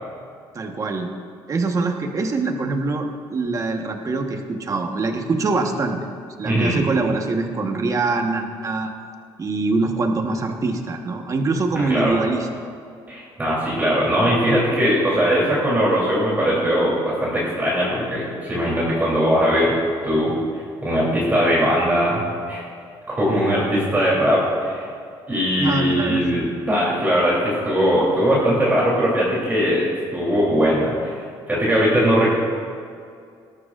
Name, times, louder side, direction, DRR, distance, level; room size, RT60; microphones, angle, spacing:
voice 1, 0.5-1.1 1.5-6.0 6.4-8.9 9.4-12.5 25.6-26.3, right 3 dB, 35° right, 4 dB, 1.3 m, -24 dB
voice 2, 6.4-6.8 11.7-12.1 13.1-19.8 20.0-22.2 22.5-22.6 23.1-24.9 25.3-29.8 30.1-32.3, equal, 20° right, -6 dB, 3.4 m, -20 dB
19.5 x 13.0 x 2.6 m, 2.3 s
cardioid pair, 110°, 10 cm